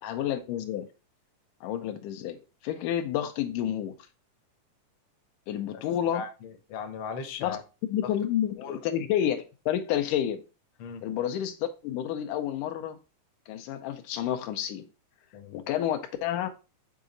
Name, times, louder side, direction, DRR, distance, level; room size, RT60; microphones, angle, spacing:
voice 1, 0.0-0.9 1.6-3.9 5.5-6.3 7.4-7.6 7.8-10.4 11.0-13.0 13.5-14.9 15.5-16.5, left 10 dB, 85° left, 2.2 m, -30 dB
voice 2, 6.1-7.6 8.6-8.8 10.8-11.0 15.3-15.6, left 5 dB, 65° left, 1.7 m, -38 dB
7.2 x 3.8 x 3.8 m
omnidirectional pair, 3.7 m